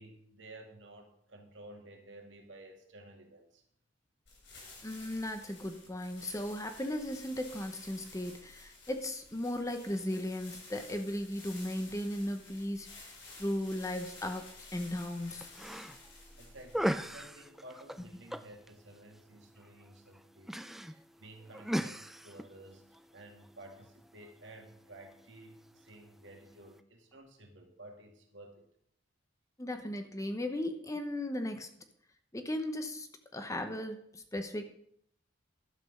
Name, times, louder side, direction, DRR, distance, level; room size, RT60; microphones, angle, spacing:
voice 1, 0.0-3.6 16.1-28.7, right 1 dB, 75° right, 2 dB, 2.1 m, -53 dB
sound 1, 4.3-17.4, left 3 dB, 70° left, 5.4 m, -53 dB
voice 2, 4.8-13.1 13.4-15.5 29.6-31.7 32.3-34.6, left 1 dB, 15° left, 7 dB, 0.9 m, -36 dB
sound 2, 15.2-26.8, equal, ahead, 0.3 m, -41 dB
12.0 x 6.0 x 6.5 m, 0.69 s
head